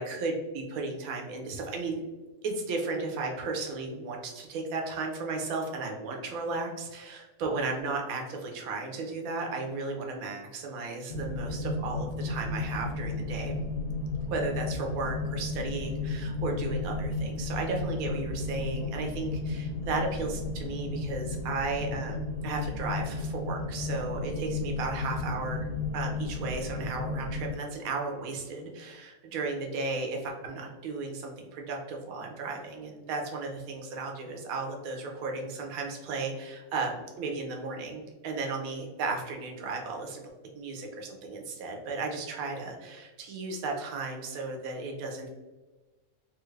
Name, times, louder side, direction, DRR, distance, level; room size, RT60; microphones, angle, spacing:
voice 1, 0.0-2.0 2.4-13.6 14.3-25.7 25.9-40.2 40.5-45.3, right 3 dB, 80° right, 1 dB, 1.1 m, -34 dB
sound 1, 11.1-27.5, left 3 dB, 65° left, 0.7 m, -33 dB
2.9 x 2.4 x 3.1 m, 1.2 s
omnidirectional pair, 1.5 m